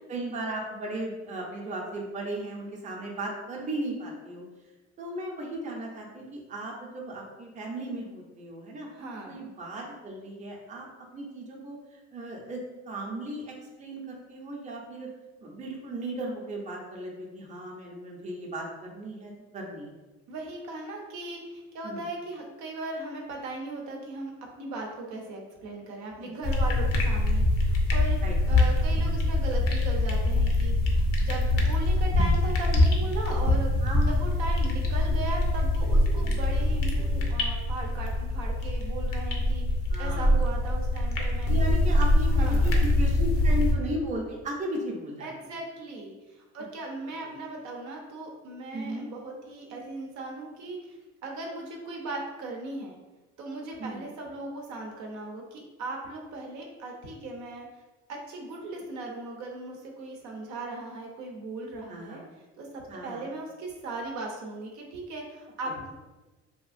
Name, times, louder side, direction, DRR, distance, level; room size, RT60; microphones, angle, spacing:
voice 1, 0.1-4.4 5.0-8.9 9.3-10.9 11.1-15.1 15.4-19.9 21.8-22.0 26.2-26.3 28.2-28.3 33.8-34.2 39.9-40.4 41.5-45.3 47.2-47.3 48.7-49.1 53.8-54.0 61.9-62.2 62.9-63.3, right 1 dB, 25° right, -2 dB, 0.6 m, -36 dB
voice 2, 8.9-9.4 20.3-28.2 28.5-33.7 34.1-39.6 40.0-41.8 42.3-42.8 45.2-53.0 53.4-57.7 58.1-62.2 62.6-65.9, right 2 dB, 65° right, 0 dB, 0.6 m, -38 dB
sound 1, 26.4-43.7, left 1 dB, 50° left, 0.6 m, -24 dB
2.9 x 2.4 x 2.4 m, 1.2 s
cardioid pair, 100°, 31 cm